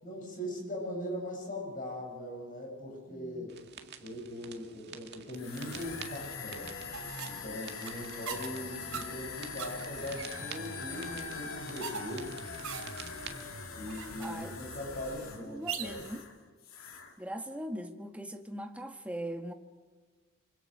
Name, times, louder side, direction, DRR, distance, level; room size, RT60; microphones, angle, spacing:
voice 1, 0.0-3.5 4.0-6.7 7.2-12.3 13.7-16.0, equal, 40° left, 1 dB, 7.7 m, -40 dB
voice 2, 3.1-3.5 14.2-14.6 15.3-16.3 17.2-19.5, right 1 dB, 5° right, 5 dB, 1.4 m, -40 dB
sound 1, 3.5-13.5, right 7 dB, 50° right, 2.1 m, -50 dB
sound 2, 5.3-16.3 16.6-17.1, left 4 dB, 75° left, 2.6 m, -43 dB
sound 3, 6.9-16.2, right 6 dB, 80° right, 2.9 m, -44 dB
25.5 x 25.0 x 6.5 m, 1.5 s
head